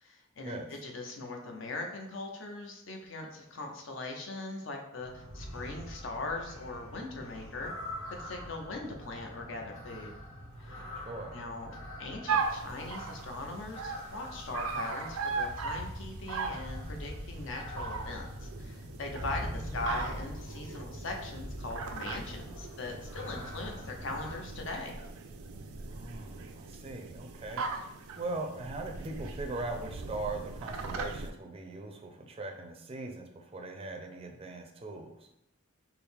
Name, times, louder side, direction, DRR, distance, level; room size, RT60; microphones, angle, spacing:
voice 1, 0.0-7.7 8.2-10.1 10.6-10.9 11.3-25.0, left 2 dB, 60° left, 2 dB, 0.6 m, -40 dB
sound 1, 5.0-24.3, equal, 80° left, 1.3 m, -43 dB
sound 2, 12.3-31.3, right 4 dB, 90° right, 0.4 m, -39 dB
voice 2, 25.9-27.7 28.2-35.3, right 2 dB, 30° right, 3 dB, 0.4 m, -40 dB
4.4 x 2.0 x 3.5 m, 0.83 s
head